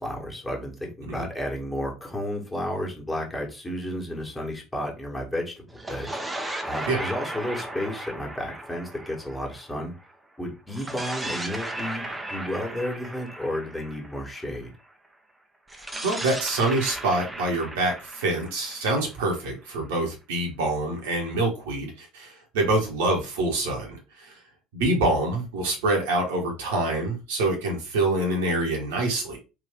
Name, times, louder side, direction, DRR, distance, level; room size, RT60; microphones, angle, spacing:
voice 1, 0.0-6.2 6.6-9.9 10.4-14.7, left 1 dB, 15° left, 0 dB, 1.5 m, -32 dB
sound 1, 5.7-10.1 10.7-14.6 15.7-19.5, right 1 dB, 10° right, 0.7 m, -36 dB
voice 2, 16.0-24.4 24.7-29.4, right 2 dB, 70° right, 0 dB, 1.3 m, -26 dB
3.7 x 2.7 x 3.5 m, 0.29 s
figure-of-eight pair, 60°, 0 cm